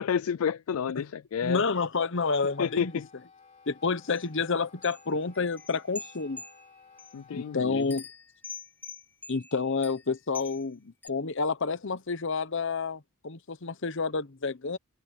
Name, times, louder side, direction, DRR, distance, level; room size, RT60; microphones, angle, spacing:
voice 1, 0.0-1.6 2.6-3.1 7.1-7.9, left 7 dB, 85° left, 0.4 m, -30 dB
voice 2, 1.4-2.9 3.7-6.4 7.3-8.1 9.3-14.8, left 4 dB, 60° left, 1.0 m, -29 dB
Wind instrument woodwind instrument, 2.0-7.7, left 5 dB, 30° left, 3.5 m, -56 dB
sound 1, 4.1-4.3 4.8-7.2 7.8-10.6 11.0-11.1, left 4 dB, 10° left, 1.4 m, -45 dB
open air
head